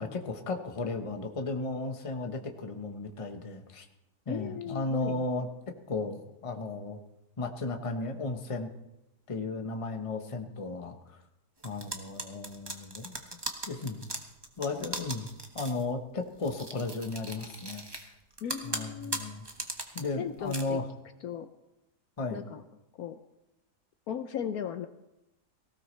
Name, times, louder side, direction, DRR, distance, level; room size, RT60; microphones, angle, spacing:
voice 1, 0.0-3.9 4.3-5.5 5.9-7.0 7.4-8.7 9.3-11.2 11.6-13.2 13.7-14.1 14.6-15.3 15.5-18.1 18.6-19.5 19.9-20.9 22.2-22.4, left 3 dB, 25° left, 5 dB, 1.0 m, -35 dB
voice 2, 4.3-5.2 18.4-19.2 20.2-20.8 21.2-21.5 22.3-22.6 23.0-23.2 24.1-24.9, left 8 dB, 70° left, 10 dB, 1.1 m, -37 dB
sound 1, 11.6-15.8 16.4-18.1 18.4-20.0 20.4-20.6, right 2 dB, 15° right, 1.1 m, -38 dB
18.5 x 16.0 x 3.2 m, 0.90 s
omnidirectional pair, 1.8 m